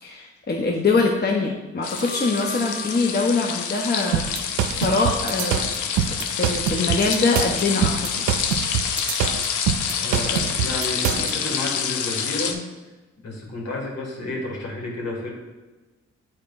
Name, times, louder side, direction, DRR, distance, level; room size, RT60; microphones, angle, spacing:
voice 1, 0.0-4.4 4.8-5.6 5.9-8.3, left 3 dB, 35° left, 1 dB, 0.8 m, -23 dB
sound 1, 1.8-12.5, left 7 dB, 90° left, 0.6 m, -27 dB
sound 2, 1.9-5.0 5.3-5.4, right 1 dB, 25° right, 0.6 m, -39 dB
sound 3, 4.1-11.3, right 9 dB, 90° right, 0.4 m, -24 dB
voice 2, 10.0-12.6 13.2-15.3, left 2 dB, 60° left, -2 dB, 2.0 m, -31 dB
8.5 x 4.4 x 2.6 m, 1.2 s
supercardioid pair, 50°, 29 cm